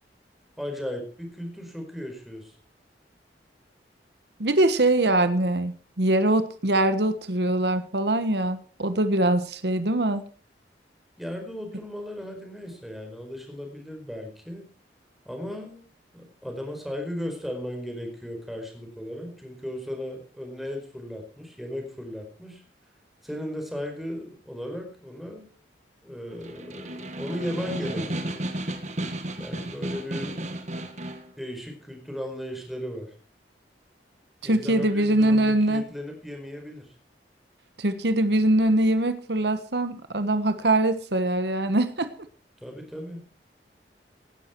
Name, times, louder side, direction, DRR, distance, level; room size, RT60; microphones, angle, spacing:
voice 1, 0.6-2.5 11.2-14.6 15.2-15.8 16.1-22.6 23.2-25.5 26.0-28.3 29.4-30.4 31.4-33.1 34.4-36.9 42.6-43.2, left 1 dB, ahead, 3 dB, 4.9 m, -36 dB
voice 2, 4.4-10.2 34.4-35.8 37.8-42.1, right 1 dB, 70° right, 11 dB, 1.3 m, -23 dB
Snare drum, 26.3-31.3, right 1 dB, 40° right, 1.9 m, -33 dB
18.0 x 12.0 x 4.6 m, 0.41 s
head